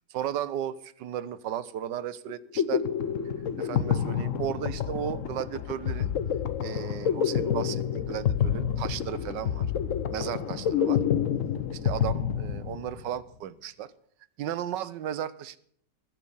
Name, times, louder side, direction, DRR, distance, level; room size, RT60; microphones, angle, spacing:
voice 1, 0.1-2.8 3.6-6.1 6.6-9.7 10.1-11.0 11.7-13.9 14.4-15.6, right 10 dB, 85° right, 14 dB, 1.4 m, -35 dB
sound 1, 2.3-13.1, left 8 dB, 55° left, 1.1 m, -28 dB
21.0 x 7.5 x 5.5 m, 0.63 s
omnidirectional pair, 1.9 m